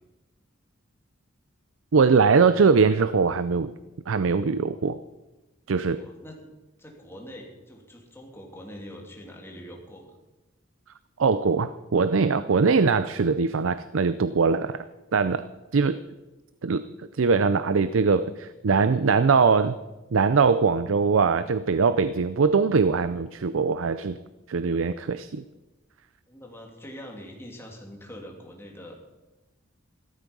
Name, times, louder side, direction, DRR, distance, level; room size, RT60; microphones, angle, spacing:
voice 1, 1.9-3.7 4.1-5.0 5.7-6.0 11.2-14.8 15.1-15.5 15.7-16.0 16.6-16.8 17.1-19.8 20.1-24.2 24.5-25.4, right 5 dB, 85° right, 14 dB, 0.5 m, -22 dB
voice 2, 5.9-6.5 6.8-10.1 26.3-28.9, equal, 10° left, 0 dB, 2.8 m, -43 dB
16.0 x 13.0 x 5.4 m, 1.1 s
head